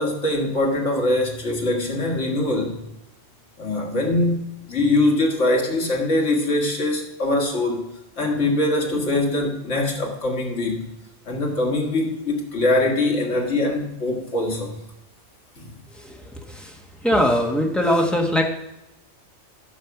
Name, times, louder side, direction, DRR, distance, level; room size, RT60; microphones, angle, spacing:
voice 1, 0.0-2.8 3.6-7.9 8.2-10.9 11.3-14.8 15.6-15.7, left 2 dB, 75° left, 2.1 m, -23 dB
voice 2, 17.0-18.4, equal, ahead, 1.3 m, -20 dB
10.0 x 6.7 x 5.9 m
omnidirectional pair, 1.3 m